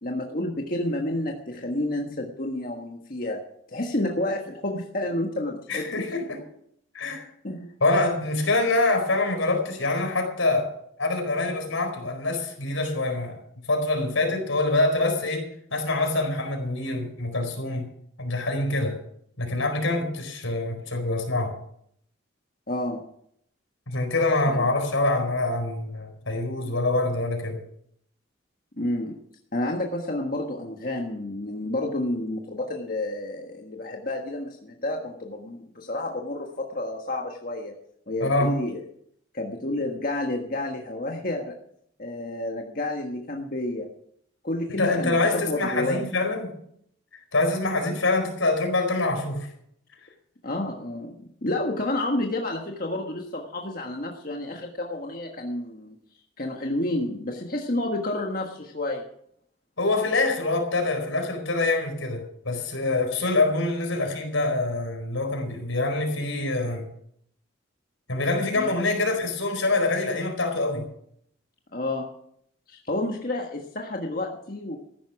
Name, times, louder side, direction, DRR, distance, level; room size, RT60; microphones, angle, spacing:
voice 1, 0.0-3.4 3.7-6.0 7.4-7.6 22.7-23.0 24.5-24.7 28.8-29.2 29.5-37.7 38.1-38.8 39.3-41.5 42.0-43.9 44.4-46.0 50.4-51.1 51.4-55.9 56.4-59.1 68.5-68.7 71.7-72.0 72.7-74.8, left 1 dB, 45° left, 1 dB, 1.5 m, -30 dB
voice 2, 5.7-6.4 6.9-7.3 7.8-10.7 11.0-13.4 13.7-17.9 18.2-19.0 19.4-21.5 23.9-27.6 38.2-38.5 44.7-46.5 47.3-49.5 59.8-66.9 68.1-70.9, left 2 dB, 85° left, 4 dB, 4.5 m, -25 dB
15.0 x 11.0 x 5.9 m, 0.70 s
head